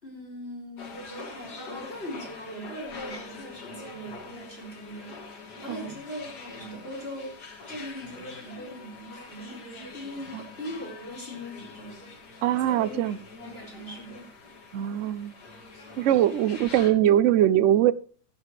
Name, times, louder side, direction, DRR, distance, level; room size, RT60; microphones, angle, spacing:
voice 1, 0.0-7.3 7.7-12.1 12.6-13.0 13.4-14.3, equal, 35° left, 5.3 m, -40 dB
sound 1, 0.8-16.9, left 3 dB, 70° left, 2.7 m, -44 dB
voice 2, 12.4-13.2 14.7-15.3 16.0-17.9, right 11 dB, 60° right, 0.8 m, -22 dB
16.0 x 9.4 x 3.1 m
omnidirectional pair, 1.8 m